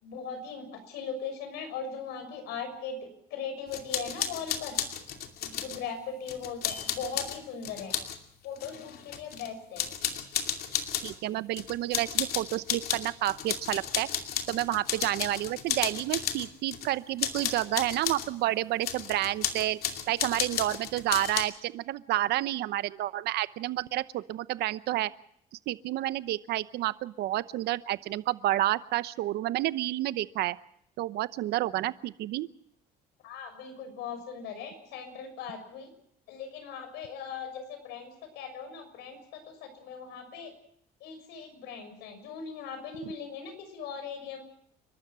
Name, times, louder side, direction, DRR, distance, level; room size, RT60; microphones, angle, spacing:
voice 1, 0.0-4.7 5.4-7.9 8.4-9.8 33.2-35.9 36.3-40.5 41.0-44.4, left 6 dB, 85° left, 6 dB, 6.3 m, -39 dB
sound 1, 3.7-5.8 6.3-8.2 8.6-9.5 9.8-11.1 11.5-16.9 17.2-18.3 18.8-21.4, left 9 dB, 65° left, 2.6 m, -33 dB
voice 2, 11.0-14.1 14.5-19.8 20.1-25.1 25.7-30.6 31.0-32.5 43.0-43.1, right 15 dB, 75° right, 15 dB, 0.9 m, -30 dB
30.0 x 12.5 x 7.4 m, 0.70 s
cardioid pair, 110°, 17 cm